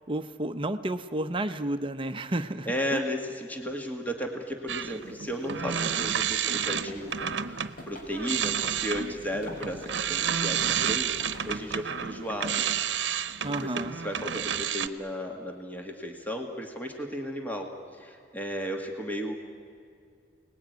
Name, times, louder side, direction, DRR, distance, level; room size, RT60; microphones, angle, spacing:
voice 1, 0.1-3.0 13.4-14.0, right 1 dB, 30° right, 8 dB, 0.8 m, -31 dB
voice 2, 2.7-12.6 13.5-19.3, equal, 10° left, 2 dB, 2.0 m, -34 dB
sound 1, 4.7-7.7 8.1-14.9, right 8 dB, 80° right, 0.9 m, -30 dB
sound 2, 6.6-11.8, equal, 55° left, 4.8 m, -47 dB
28.5 x 20.0 x 9.5 m, 2.4 s
head